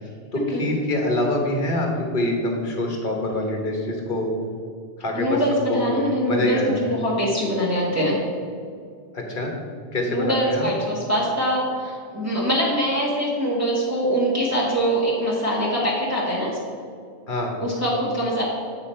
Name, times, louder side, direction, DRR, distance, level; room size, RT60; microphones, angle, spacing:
voice 1, 0.3-4.3 5.0-5.4 5.7-5.9 6.2-6.9 9.1-9.5 9.9-10.7 17.3-17.5, left 1 dB, 55° left, 1 dB, 1.4 m, -25 dB
voice 2, 5.1-8.2 10.1-16.6 17.6-18.4, equal, 15° right, -6 dB, 1.3 m, -23 dB
8.4 x 4.9 x 4.3 m, 2.2 s
omnidirectional pair, 1.1 m